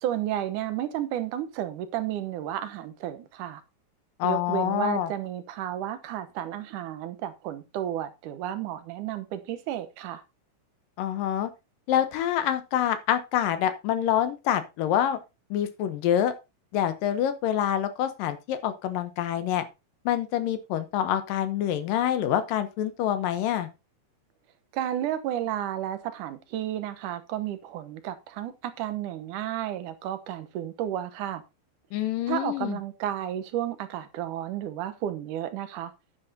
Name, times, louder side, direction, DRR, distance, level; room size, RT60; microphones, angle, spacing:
voice 1, 0.0-3.6 4.2-10.2 24.7-31.4 32.3-35.9, right 11 dB, 70° right, 2.3 m, -32 dB
voice 2, 4.2-5.1 11.0-11.5 11.9-15.2 15.5-16.3 16.7-19.6 20.1-23.7 31.9-32.8, left 10 dB, 75° left, 2.5 m, -26 dB
10.5 x 10.0 x 2.8 m
omnidirectional pair, 4.3 m